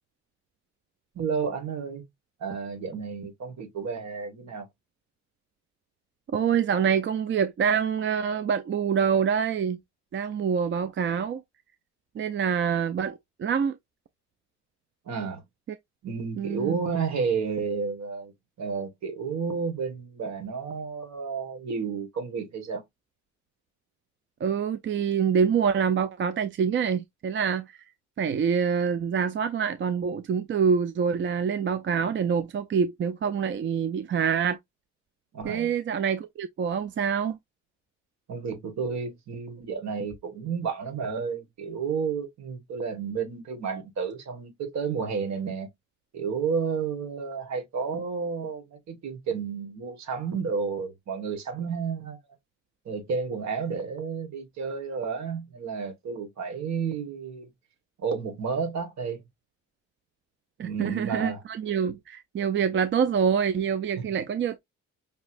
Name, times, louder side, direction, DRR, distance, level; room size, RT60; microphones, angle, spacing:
voice 1, 1.1-2.0 2.4-4.7 15.0-15.4 16.0-18.3 18.6-22.8 35.3-35.7 38.3-45.7 46.1-52.2 52.8-57.5 58.0-59.2 60.6-61.4 64.0-64.1, right 5 dB, 65° right, 1.7 m, -31 dB
voice 2, 6.3-9.8 10.1-11.4 12.2-13.8 16.4-16.8 24.4-27.8 28.2-34.6 35.4-37.4 60.6-64.6, right 7 dB, 40° right, 0.4 m, -26 dB
5.4 x 2.9 x 2.5 m
cardioid pair, 90°, 30 cm